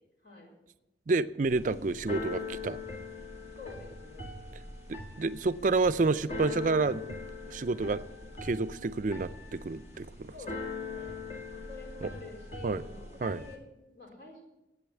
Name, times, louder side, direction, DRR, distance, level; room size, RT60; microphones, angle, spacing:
voice 1, 0.2-0.5 3.6-4.4 10.3-11.3 11.5-14.4, left 3 dB, 60° left, -2 dB, 4.4 m, -48 dB
voice 2, 1.1-2.8 4.9-7.0 7.5-8.0 8.4-10.3 12.0-12.1 12.6-12.8 13.2-13.4, right 3 dB, 45° right, 14 dB, 0.4 m, -29 dB
Keyboard (musical), 1.4-13.6, left 3 dB, 35° left, 2.0 m, -42 dB
10.5 x 8.4 x 8.1 m, 0.97 s
head